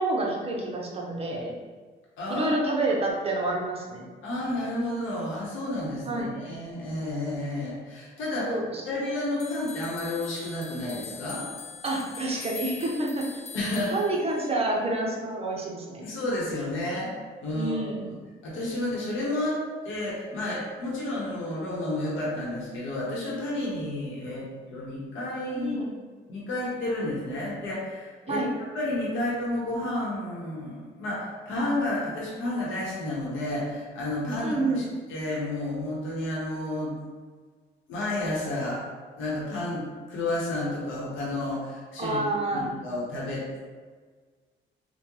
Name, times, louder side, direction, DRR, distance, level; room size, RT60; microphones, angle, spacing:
voice 1, 0.0-1.5 2.3-4.1 6.0-6.3 8.5-8.8 11.8-13.4 13.9-16.1 17.5-18.1 25.5-25.9 28.3-28.5 34.4-34.9 42.0-42.7, right 2 dB, 30° right, -1 dB, 0.7 m, -28 dB
voice 2, 2.2-2.6 4.2-8.5 8.9-11.5 13.5-13.9 16.0-17.1 17.4-18.2 18.4-25.9 26.3-28.4 28.7-34.8 35.1-37.0 37.9-38.8 39.2-42.2 42.5-43.6, left 1 dB, 85° left, -5 dB, 1.0 m, -31 dB
sound 1, 9.4-14.6, left 5 dB, 35° left, 0.5 m, -43 dB
3.5 x 2.2 x 3.0 m, 1.5 s
cardioid pair, 90°, 20 cm